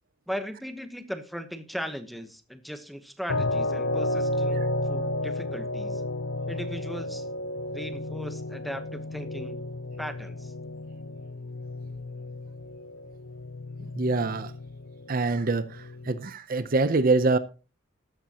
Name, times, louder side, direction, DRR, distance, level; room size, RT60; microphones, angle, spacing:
voice 1, 0.3-6.0 6.5-7.3 7.7-9.6 10.0-10.5, equal, ahead, 1.0 m, -38 dB
sound 1, 3.3-16.3, left 1 dB, 70° left, 0.8 m, -32 dB
voice 2, 14.0-14.5 15.1-15.7 16.1-17.4, right 3 dB, 45° right, 0.6 m, -24 dB
13.5 x 12.0 x 2.9 m
head